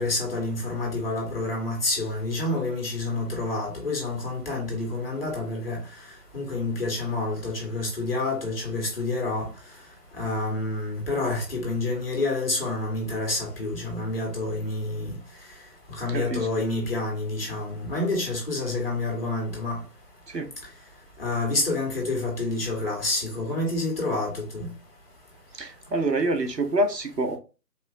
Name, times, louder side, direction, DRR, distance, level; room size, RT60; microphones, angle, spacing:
voice 1, 0.0-5.8 6.3-9.5 10.2-15.1 16.0-19.8 21.2-24.7, left 2 dB, 35° left, 1.5 m, -28 dB
voice 2, 16.1-16.5 20.3-20.5 25.5-27.4, right 2 dB, 75° right, 1.0 m, -26 dB
4.1 x 2.8 x 2.6 m
figure-of-eight pair, 160°, 49 cm